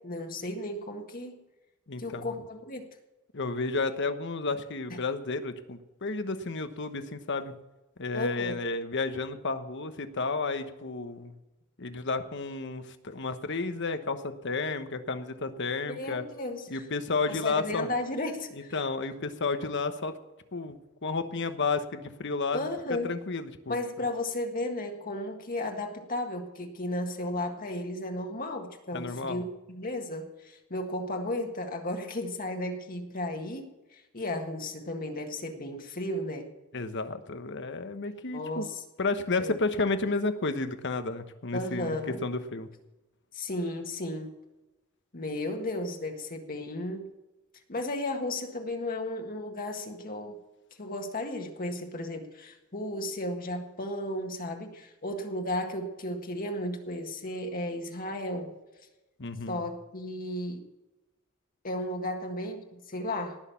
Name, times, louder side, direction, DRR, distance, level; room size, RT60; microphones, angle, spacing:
voice 1, 0.0-1.4 2.0-2.9 4.9-5.0 8.1-8.5 15.9-16.9 17.3-18.8 22.5-23.1 23.7-36.5 38.3-38.8 39.4-39.5 41.5-42.2 43.3-44.3 45.1-47.0 47.7-50.4 50.8-58.5 59.5-60.6 61.6-63.4, left 1 dB, 45° left, 4 dB, 1.7 m, -34 dB
voice 2, 1.9-2.3 3.3-7.6 8.0-11.4 11.8-16.2 16.7-17.9 18.7-20.1 20.5-23.8 28.9-29.4 36.7-38.7 39.0-42.0 42.2-42.7 59.2-59.6, left 3 dB, 60° left, 9 dB, 1.2 m, -32 dB
19.0 x 6.6 x 7.0 m, 1.0 s
head